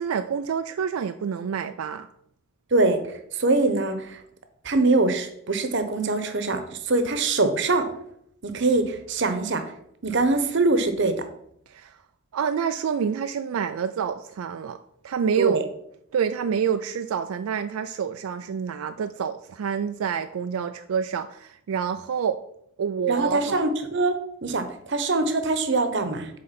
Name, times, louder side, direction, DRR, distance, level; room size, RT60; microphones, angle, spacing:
voice 1, 0.0-2.1 11.7-12.0 12.3-14.8 15.0-15.6 16.1-22.4 22.8-23.6, right 7 dB, 90° right, 9 dB, 0.4 m, -27 dB
voice 2, 3.4-4.2 4.6-6.6 6.9-7.9 8.4-9.6 10.0-11.1 15.4-15.6 23.1-26.3, right 3 dB, 60° right, 8 dB, 0.9 m, -23 dB
8.0 x 3.8 x 5.8 m, 0.72 s
head